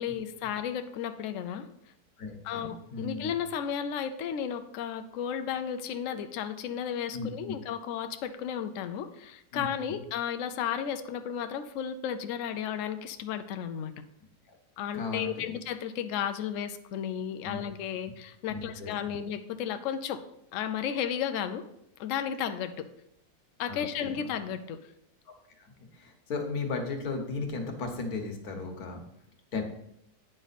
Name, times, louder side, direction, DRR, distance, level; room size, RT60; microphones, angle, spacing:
voice 1, 0.0-1.7 2.4-14.0 14.8-20.2 20.5-21.6 22.0-22.7 23.6-24.8 29.5-29.6, left 8 dB, 80° left, 9 dB, 0.7 m, -33 dB
voice 2, 2.2-3.3 7.1-7.5 9.5-10.0 14.5-14.6 14.9-15.5 17.4-17.6 18.5-19.2 23.7-24.3 25.3-29.0 29.5-29.6, left 3 dB, 60° left, 4 dB, 1.5 m, -36 dB
9.0 x 5.1 x 4.0 m, 0.78 s
omnidirectional pair, 1.9 m